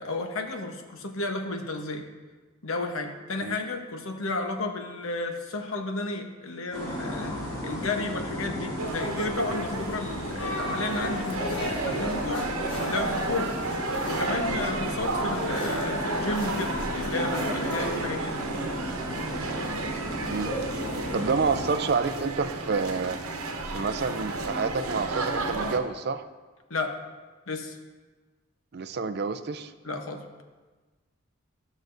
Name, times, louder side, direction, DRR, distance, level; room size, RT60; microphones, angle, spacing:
voice 1, 0.0-2.0 2.6-7.4 7.6-12.5 12.8-13.5 14.1-18.4 26.7-26.9 27.5-27.8 29.8-30.2, left 2 dB, 75° left, 4 dB, 1.0 m, -32 dB
sound 1, 6.7-21.7, left 1 dB, 25° left, 2.3 m, -35 dB
sound 2, 8.8-25.8, right 3 dB, 85° right, 1.0 m, -33 dB
sound 3, 10.4-18.0, equal, 55° left, 1.6 m, -35 dB
voice 2, 21.1-23.2 23.7-26.2 28.7-29.7, right 4 dB, 50° right, 11 dB, 0.4 m, -28 dB
14.0 x 6.2 x 2.6 m, 1.3 s
head